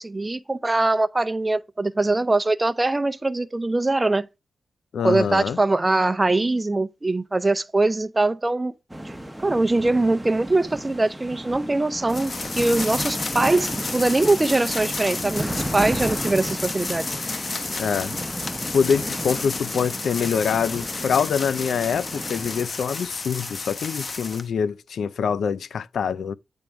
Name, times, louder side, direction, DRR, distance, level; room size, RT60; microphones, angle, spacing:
voice 1, 0.0-4.3 5.0-8.7 9.0-9.1 9.4-17.1, right 2 dB, 25° right, 0.6 m, -22 dB
voice 2, 4.9-5.6 17.8-18.2 18.7-26.3, left 6 dB, 75° left, 0.4 m, -25 dB
sound 1, 8.9-22.7, right 1 dB, 5° right, 1.0 m, -34 dB
sound 2, 12.1-24.5, left 3 dB, 45° left, 0.9 m, -32 dB
8.9 x 3.5 x 4.6 m
cardioid pair, 70°, 0 cm